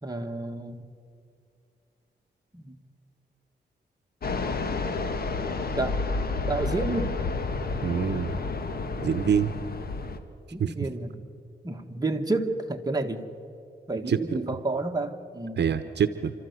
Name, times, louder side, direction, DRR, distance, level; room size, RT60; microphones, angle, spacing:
voice 1, 0.0-0.9 2.5-2.7 5.7-6.0 6.5-7.2 10.5-11.2 11.6-13.2 13.9-15.6, right 2 dB, 20° right, 3 dB, 1.7 m, -30 dB
Fixed-wing aircraft airplane, 4.2-10.2, left 3 dB, 55° left, 1.6 m, -30 dB
voice 2, 7.8-8.4 9.0-9.5 10.6-10.7 14.1-14.2 15.6-16.3, right 7 dB, 70° right, 11 dB, 0.9 m, -25 dB
29.5 x 13.0 x 8.2 m, 2.5 s
cardioid pair, 90°, 18 cm